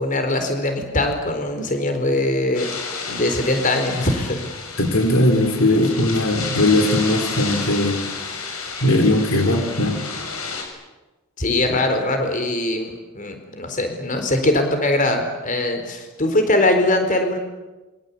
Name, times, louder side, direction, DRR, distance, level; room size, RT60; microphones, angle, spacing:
voice 1, 0.0-4.4 11.4-17.4, left 1 dB, 35° left, 6 dB, 4.3 m, -21 dB
sound 1, 2.5-10.6, left 4 dB, 90° left, 6.8 m, -31 dB
voice 2, 4.8-8.0 8.8-10.0 11.7-11.8, left 1 dB, 70° left, 6 dB, 3.8 m, -19 dB
27.0 x 24.0 x 8.6 m, 1.1 s
head